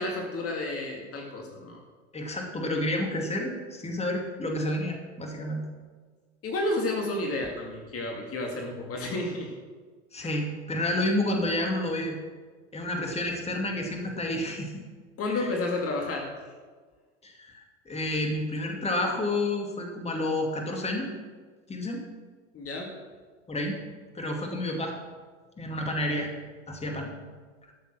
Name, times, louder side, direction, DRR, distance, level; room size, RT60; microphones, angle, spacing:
voice 1, 0.0-1.8 6.4-9.5 10.2-10.3 15.2-16.3 22.5-22.9, left 2 dB, 35° left, 1 dB, 2.2 m, -31 dB
voice 2, 2.1-5.6 10.1-12.2 12.7-14.7 15.3-15.5 17.2-21.1 21.7-22.0 23.5-23.8 24.1-24.9 25.6-26.3 26.7-27.1, left 1 dB, 15° left, 2 dB, 2.4 m, -30 dB
13.0 x 7.0 x 6.1 m, 1.5 s
hypercardioid pair, 85°, 38 cm